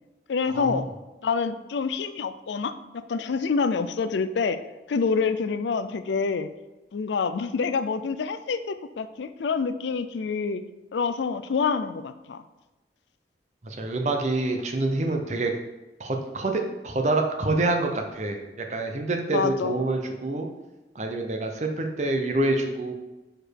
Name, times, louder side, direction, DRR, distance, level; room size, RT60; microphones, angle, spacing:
voice 1, 0.3-0.9 1.2-4.6 4.9-6.5 6.9-10.6 10.9-12.4 19.3-19.8, left 5 dB, 85° left, 11 dB, 0.4 m, -27 dB
voice 2, 13.6-15.5 16.0-18.4 18.7-20.5 20.9-22.9, right 2 dB, 40° right, 4 dB, 0.7 m, -26 dB
4.9 x 4.4 x 4.6 m, 1.1 s
head